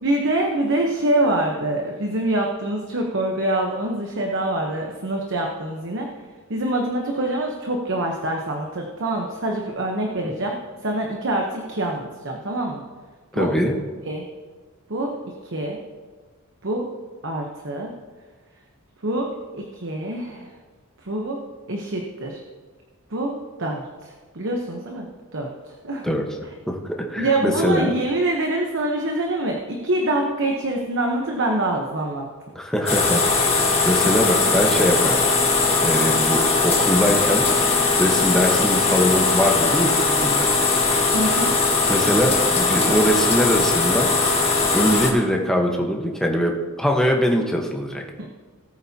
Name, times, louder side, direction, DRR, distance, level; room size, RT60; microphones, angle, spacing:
voice 1, 0.0-6.1 6.5-10.6 10.8-12.8 13.3-13.5 14.1-14.3 14.9-15.2 15.5-15.8 16.6-16.9 17.2-17.9 19.0-19.3 19.5-20.5 21.0-21.4 21.7-22.4 23.1-23.3 23.6-25.5 25.8-26.1 27.2-32.3 41.1-41.5 48.2-48.3, right 1 dB, 55° right, 1 dB, 1.0 m, -25 dB
voice 2, 13.3-13.7 26.0-26.2 26.7-27.9 32.5-35.2 35.8-37.7 38.0-40.5 41.9-44.1 44.7-48.0, equal, 5° left, 0 dB, 1.1 m, -22 dB
sound 1, 32.9-45.1, left 3 dB, 25° left, 1.7 m, -20 dB
18.0 x 8.8 x 2.9 m, 1.4 s
head